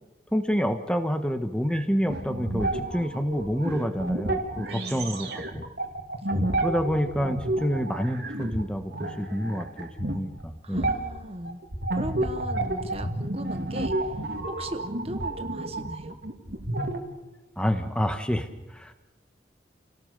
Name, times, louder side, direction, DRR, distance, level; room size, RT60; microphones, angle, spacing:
voice 1, 0.3-5.7 6.6-10.9 17.6-18.9, equal, 5° left, 7 dB, 1.4 m, -28 dB
sound 1, 1.7-8.6 8.9-10.4 10.7-17.0, right 1 dB, 60° right, 2.6 m, -31 dB
voice 2, 4.7-5.2 10.6-11.6 11.9-14.2 14.5-16.2, right 1 dB, 30° right, 9 dB, 0.9 m, -38 dB
29.0 x 18.0 x 6.8 m, 1.1 s
head